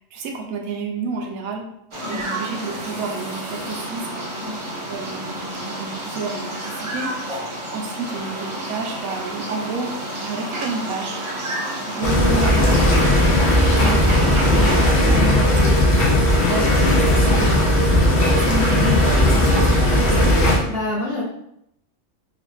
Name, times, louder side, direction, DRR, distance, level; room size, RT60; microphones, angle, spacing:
voice 1, 0.0-1.7 2.1-4.1 4.9-9.9 10.2-11.2 11.9-13.2 13.6-15.9 16.3-17.8 18.3-20.4, right 4 dB, 80° right, 2 dB, 1.1 m, -30 dB
sound 1, 1.9-14.9, right 1 dB, 50° right, 0.3 m, -30 dB
sound 2, 12.0-20.6, left 1 dB, 65° left, 1.1 m, -16 dB
voice 2, 20.3-21.2, left 2 dB, 85° left, -8 dB, 2.2 m, -29 dB
3.9 x 2.4 x 3.1 m, 0.77 s
omnidirectional pair, 1.5 m